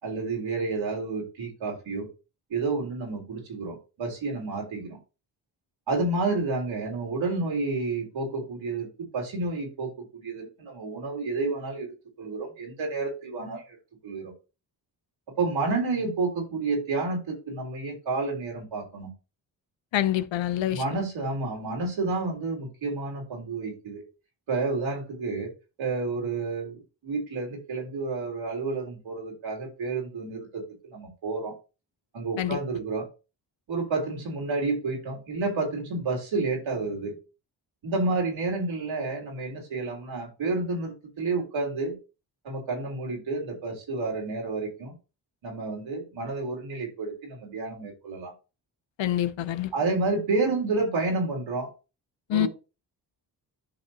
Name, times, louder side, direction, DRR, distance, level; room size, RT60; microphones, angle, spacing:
voice 1, 0.0-2.1 2.5-5.0 5.9-8.9 9.1-11.9 12.2-13.8 14.0-14.3 15.3-19.1 20.7-24.0 24.5-25.5 25.8-31.5 32.1-33.1 33.7-37.2 37.8-42.0 42.4-45.0 45.4-48.3 49.7-51.7 52.3-52.5, right 3 dB, 75° right, 3.7 m, -30 dB
voice 2, 19.9-20.8 32.4-32.6 49.0-49.7 52.3-52.5, left 12 dB, 70° left, 0.8 m, -26 dB
10.5 x 5.5 x 2.9 m
supercardioid pair, 45°, 47 cm